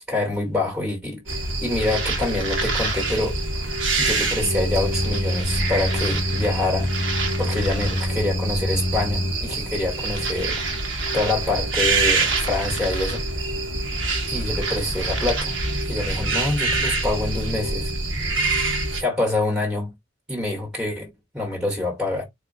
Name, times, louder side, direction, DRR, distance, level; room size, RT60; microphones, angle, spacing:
voice 1, 0.0-3.6 4.0-6.9 7.4-10.6 11.1-13.6 14.3-15.6 15.9-17.9 18.9-19.9 20.3-22.2, left 2 dB, 5° right, 1.2 m, -26 dB
sound 1, 1.3-19.0, right 3 dB, 70° right, 1.2 m, -25 dB
sound 2, 4.4-9.3, left 1 dB, 40° left, 0.6 m, -26 dB
4.1 x 2.7 x 2.7 m
head